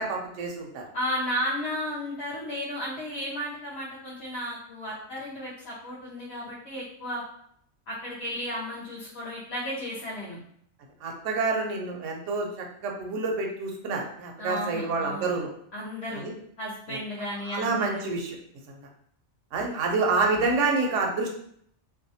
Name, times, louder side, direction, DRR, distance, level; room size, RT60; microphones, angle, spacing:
voice 1, 0.0-0.8 11.0-15.5 16.1-16.3 16.9-17.0 17.4-18.4 18.7-18.8 19.5-21.3, right 3 dB, 70° right, 1 dB, 0.9 m, -28 dB
voice 2, 0.9-7.2 7.9-10.4 14.4-15.3 15.7-16.2 16.6-18.1 19.6-19.7, equal, 60° left, -6 dB, 0.8 m, -34 dB
2.7 x 2.2 x 2.6 m, 0.68 s
omnidirectional pair, 1.4 m